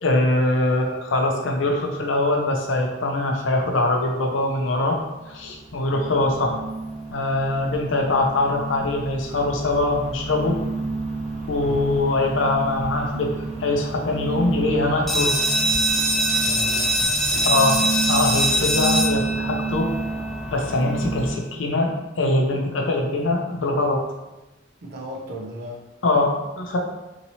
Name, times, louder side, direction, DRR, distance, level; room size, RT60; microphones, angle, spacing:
voice 1, 0.0-5.0 5.3-6.6 7.1-10.5 11.5-15.3 17.4-17.8 18.1-19.9 20.5-24.0 26.0-26.8, left 2 dB, 90° left, 1 dB, 0.6 m, -22 dB
voice 2, 0.6-1.0 6.3-6.6 11.6-12.0 16.4-17.0 17.3-17.6 24.8-25.8, right 1 dB, 60° right, -1 dB, 0.6 m, -36 dB
sound 1, 5.1-21.3, right 3 dB, 35° right, 0.9 m, -30 dB
sound 2, 15.1-20.5, equal, ahead, 0.5 m, -23 dB
2.8 x 2.7 x 2.8 m, 1.0 s
head